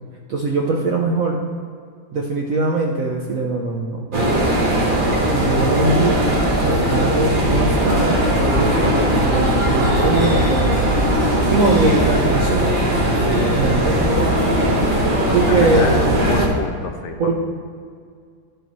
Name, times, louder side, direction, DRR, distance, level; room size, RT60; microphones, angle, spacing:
voice 1, 0.3-1.4 2.1-4.3 5.3-11.1 11.5-12.8 13.5-14.0 15.3-15.9 17.2-17.4, right 3 dB, 65° right, -1 dB, 0.8 m, -22 dB
sound 1, 4.1-16.5, right 1 dB, 35° right, 0.9 m, -18 dB
voice 2, 15.5-17.4, left 4 dB, 70° left, 5 dB, 1.1 m, -27 dB
11.0 x 6.6 x 3.1 m, 2.1 s
omnidirectional pair, 2.1 m